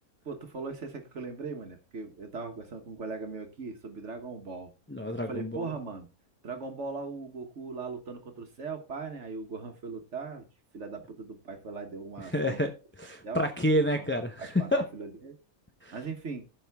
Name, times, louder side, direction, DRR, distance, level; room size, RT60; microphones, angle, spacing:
voice 1, 0.2-4.7 5.3-6.1 6.4-10.4 10.7-12.6 13.2-13.4 14.0-14.1 14.4-15.4 15.9-16.5, right 4 dB, 55° right, 1.4 m, -39 dB
voice 2, 4.9-5.7 12.3-12.7 13.0-14.8 15.8-15.9, equal, 15° left, 0.5 m, -28 dB
15.0 x 5.7 x 3.5 m
omnidirectional pair, 1.5 m